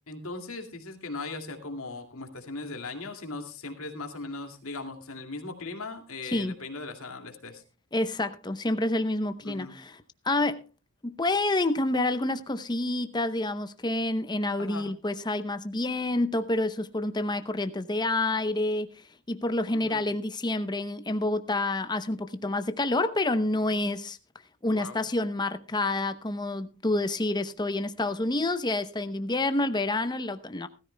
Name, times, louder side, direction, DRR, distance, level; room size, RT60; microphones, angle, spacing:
voice 1, 0.1-7.6 9.4-9.8 14.6-14.9 19.7-20.0 24.7-25.0, left 3 dB, 70° left, 2.4 m, -38 dB
voice 2, 7.9-10.0 10.2-10.6 11.0-18.9 19.3-24.2 24.6-30.7, left 2 dB, 20° left, 0.7 m, -28 dB
19.5 x 13.5 x 2.2 m
head